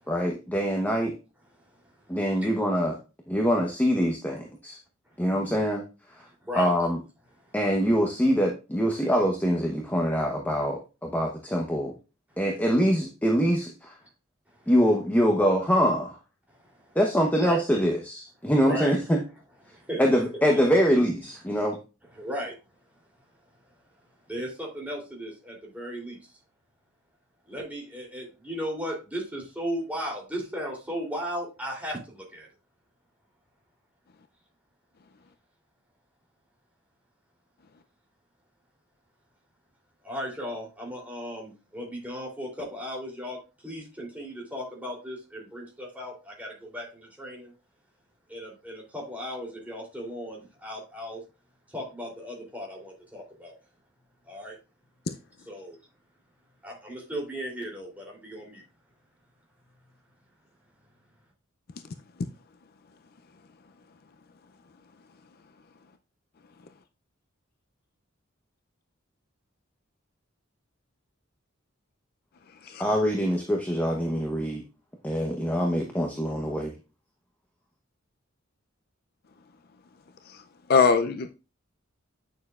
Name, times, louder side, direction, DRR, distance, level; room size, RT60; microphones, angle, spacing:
voice 1, 0.1-1.1 2.1-3.0 3.3-4.8 5.2-5.8 6.2-6.3 6.5-7.0 7.5-11.9 12.4-13.9 14.7-16.2 16.9-19.2 20.0-21.8 72.8-74.6 75.0-76.7, equal, 10° left, 0.9 m, -24 dB
voice 2, 19.7-20.0 22.2-22.5 24.3-26.2 27.5-32.5 40.0-43.4 43.6-47.5 48.3-51.2 51.7-53.5 54.3-54.6 55.5-55.8 56.6-58.6, equal, 10° right, 3.1 m, -36 dB
voice 3, 80.7-81.3, left 5 dB, 50° left, 0.5 m, -22 dB
9.0 x 6.6 x 2.4 m
head